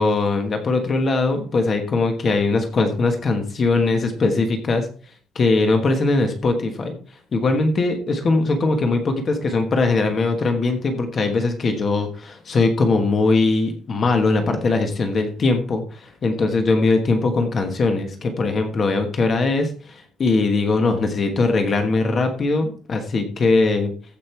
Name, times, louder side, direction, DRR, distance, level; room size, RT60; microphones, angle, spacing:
voice 1, 0.0-4.9 5.3-6.9 7.3-23.9, left 3 dB, 30° left, 5 dB, 1.3 m, -20 dB
15.0 x 5.4 x 4.5 m, 0.42 s
cardioid pair, 175°, 0 cm